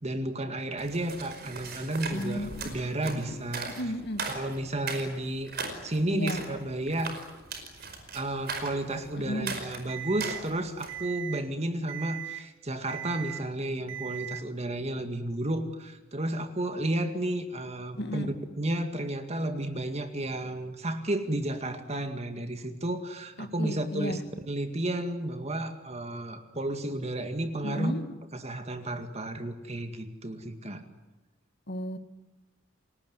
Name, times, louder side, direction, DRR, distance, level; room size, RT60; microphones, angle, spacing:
voice 1, 0.0-3.7 4.3-5.5 5.8-7.1 8.1-27.9 28.3-30.8, right 1 dB, 30° right, 7 dB, 2.1 m, -32 dB
sound 1, 0.8-11.0, right 4 dB, 50° right, 5.1 m, -39 dB
voice 2, 2.1-2.7 3.7-4.2 6.1-6.4 9.2-9.6 18.0-18.3 23.4-24.2 27.6-28.0 31.7-32.0, equal, 55° left, 8 dB, 2.2 m, -33 dB
Alarm, 9.9-10.4 10.9-11.4 11.9-12.4 12.9-13.4 13.9-14.4, right 12 dB, 75° right, 2.1 m, -38 dB
29.5 x 19.0 x 9.6 m, 1.1 s
head